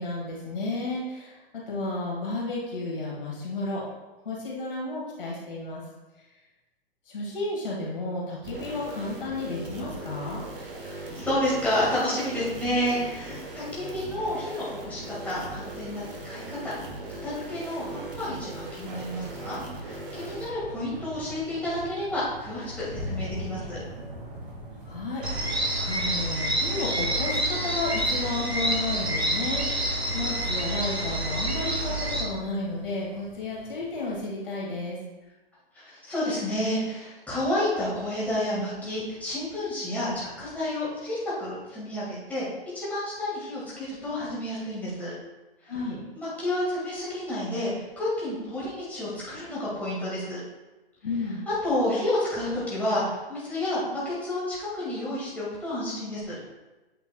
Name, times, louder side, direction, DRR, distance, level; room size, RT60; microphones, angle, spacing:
voice 1, 0.0-3.8 4.2-5.8 7.1-10.4 24.9-35.0 45.7-46.0 51.0-51.5, left 2 dB, 60° left, -4 dB, 2.3 m, -32 dB
sound 1, 8.4-20.5, right 2 dB, 60° right, 1.6 m, -39 dB
voice 2, 10.6-16.7 17.2-23.8 35.7-42.5 42.7-45.1 45.6-45.7 46.1-50.4 51.6-56.4, left 1 dB, 5° left, -9 dB, 2.0 m, -30 dB
sound 2, 16.3-17.5 18.8-34.2, equal, 40° right, 2.1 m, -43 dB
sound 3, 25.2-32.2, right 1 dB, 90° right, 1.1 m, -28 dB
8.8 x 5.6 x 2.4 m, 1.1 s
figure-of-eight pair, 115°, 31 cm